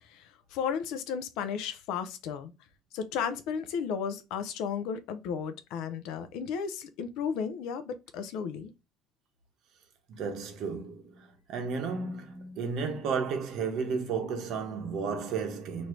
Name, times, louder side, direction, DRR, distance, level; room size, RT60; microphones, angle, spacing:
voice 1, 0.1-2.5 2.9-8.7, left 7 dB, 80° left, 0.5 m, -34 dB
voice 2, 10.1-15.9, right 5 dB, 55° right, 1.0 m, -33 dB
3.1 x 2.6 x 4.5 m
cardioid pair, 170°, 0 cm